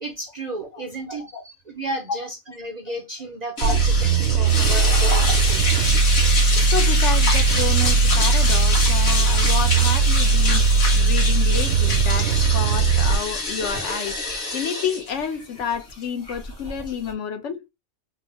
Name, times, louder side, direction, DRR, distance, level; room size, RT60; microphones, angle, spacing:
voice 1, 0.0-5.7, right 2 dB, 45° right, 0.6 m, -33 dB
sound 1, 3.6-17.1, left 2 dB, 50° left, 1.3 m, -26 dB
sound 2, 3.6-13.2, right 5 dB, 80° right, 1.0 m, -19 dB
voice 2, 6.7-14.2 14.5-17.6, left 7 dB, 70° left, 0.9 m, -30 dB
3.5 x 2.0 x 3.2 m
omnidirectional pair, 1.4 m